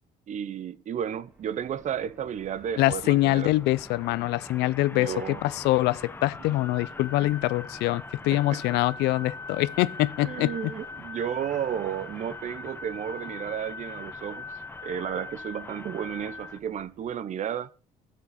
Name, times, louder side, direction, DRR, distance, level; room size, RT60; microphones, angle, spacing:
voice 1, 0.3-3.5 4.9-5.4 8.3-8.6 10.2-14.5 14.8-17.7, right 9 dB, 45° right, 0.6 m, -33 dB
Fixed-wing aircraft airplane, 0.9-17.3, right 1 dB, 10° right, 2.0 m, -54 dB
voice 2, 2.8-10.7, left 18 dB, 85° left, 0.4 m, -24 dB
sound 1, 2.9-16.6, left 3 dB, 15° left, 0.6 m, -41 dB
12.5 x 7.3 x 4.1 m
cardioid pair, 110°, 17 cm